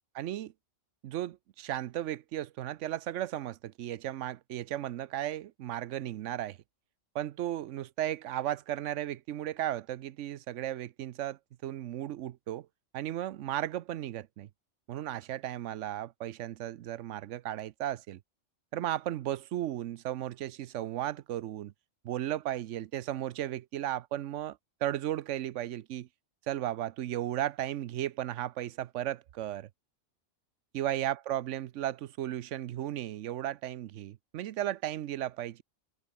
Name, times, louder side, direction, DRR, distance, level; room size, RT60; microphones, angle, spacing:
voice 1, 0.1-0.5 1.0-6.6 7.1-12.7 12.9-14.5 14.9-18.2 18.7-21.7 22.0-26.1 26.5-29.7 30.7-35.6, right 12 dB, 75° right, 0.9 m, -35 dB
omnidirectional pair, 1.3 m